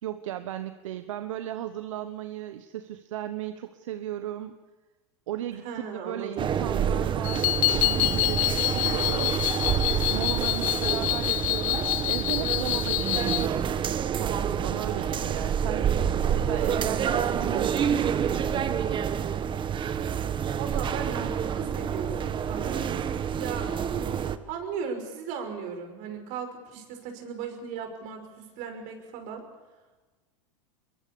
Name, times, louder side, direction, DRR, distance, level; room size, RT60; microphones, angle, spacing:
voice 1, 0.0-4.5 5.3-5.6 6.0-9.5 10.1-13.7 14.1-15.9 16.3-19.0, right 11 dB, 80° right, 10 dB, 1.1 m, -36 dB
voice 2, 5.6-6.5 20.6-23.0 23.4-23.7 24.5-29.5, right 6 dB, 60° right, 6 dB, 5.9 m, -37 dB
sound 1, 6.4-24.4, right 8 dB, 30° right, 1.3 m, -28 dB
sound 2, 7.2-13.5, left 18 dB, 60° left, 1.4 m, -27 dB
22.5 x 22.5 x 7.1 m, 1.2 s
hypercardioid pair, 110°, 16 cm